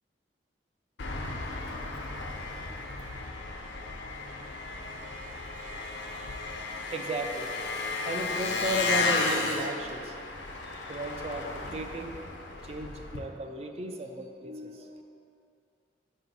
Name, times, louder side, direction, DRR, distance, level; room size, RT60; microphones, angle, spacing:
Engine, 1.0-13.2, left 3 dB, 80° left, 0.6 m, -34 dB
voice 1, 6.9-7.7 8.1-10.2 10.7-12.1 12.6-15.0, right 2 dB, 35° right, 4 dB, 0.4 m, -35 dB
6.1 x 5.2 x 3.9 m, 2.5 s
head